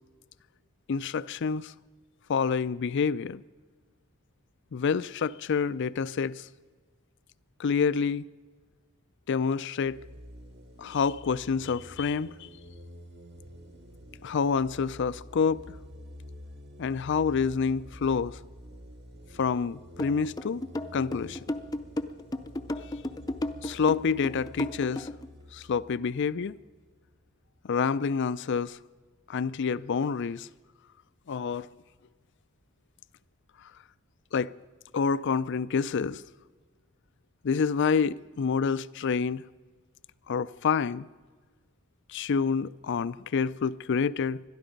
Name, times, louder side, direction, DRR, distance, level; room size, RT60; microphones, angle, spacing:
voice 1, 0.9-1.7 2.3-3.4 4.7-6.5 7.6-8.2 9.3-10.0 10.8-12.5 14.2-15.7 16.8-18.4 19.4-20.6 20.9-21.4 23.6-25.1 25.5-26.6 27.6-28.8 29.3-30.5 31.3-31.7 34.3-34.5 34.9-36.2 37.4-39.4 40.3-41.1 42.1-44.4, left 5 dB, 60° left, 0.4 m, -28 dB
sound 1, 9.8-27.2, equal, 55° right, 1.8 m, -49 dB
sound 2, 20.0-25.3, left 1 dB, 20° left, 0.6 m, -33 dB
21.5 x 12.5 x 5.3 m
head